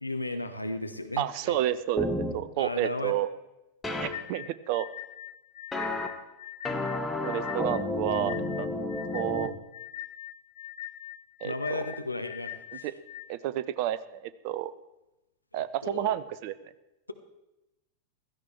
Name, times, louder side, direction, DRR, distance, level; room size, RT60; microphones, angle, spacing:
voice 1, 0.0-1.6 2.6-3.2 11.4-12.9 15.8-16.2, left 2 dB, 85° left, 8 dB, 1.0 m, -34 dB
voice 2, 1.2-2.1 2.3-3.3 4.0-4.9 7.2-8.7 9.1-9.5 11.4-11.5 12.8-12.9 13.3-14.7 15.5-16.5, right 13 dB, 45° right, 15 dB, 0.7 m, -30 dB
sound 1, 2.0-2.3 3.8-4.1 5.7-6.1 6.6-9.5, left 2 dB, 10° left, 1.5 m, -31 dB
sound 2, 4.1-13.3, left 13 dB, 60° left, 0.8 m, -42 dB
16.0 x 13.5 x 4.5 m, 0.95 s
figure-of-eight pair, 90°, 0 cm